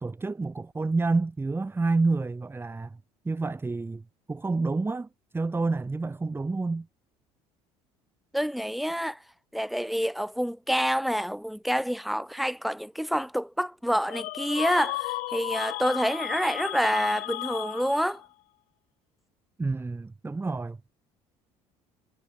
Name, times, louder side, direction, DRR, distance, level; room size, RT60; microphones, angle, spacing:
voice 1, 0.0-3.0 3.2-4.0 4.3-5.1 5.3-6.9 19.6-20.8, right 3 dB, 15° right, 1.4 m, -28 dB
voice 2, 8.3-9.2 9.5-18.2, equal, ahead, 3.7 m, -27 dB
sound 1, 14.1-18.3, left 19 dB, 70° left, 0.9 m, -34 dB
supercardioid pair, 85°, 13 cm